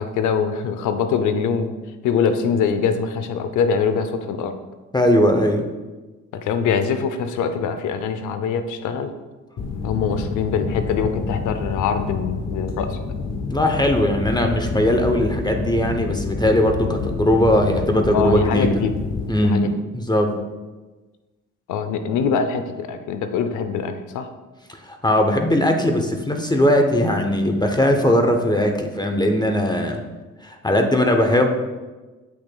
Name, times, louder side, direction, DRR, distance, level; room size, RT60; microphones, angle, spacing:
voice 1, 0.0-1.7 2.0-4.6 6.3-9.2 9.8-13.0 18.1-18.9 19.4-19.8 20.3-20.4 21.7-24.3, left 6 dB, 85° left, 9 dB, 0.6 m, -23 dB
voice 2, 4.9-5.7 13.5-18.8 19.3-20.4 24.7-30.0 30.4-31.5, left 1 dB, 15° left, 4 dB, 0.7 m, -19 dB
sound 1, 9.6-19.3, left 4 dB, 60° left, 0.9 m, -28 dB
8.0 x 6.2 x 2.3 m, 1.2 s
cardioid pair, 90°, 30 cm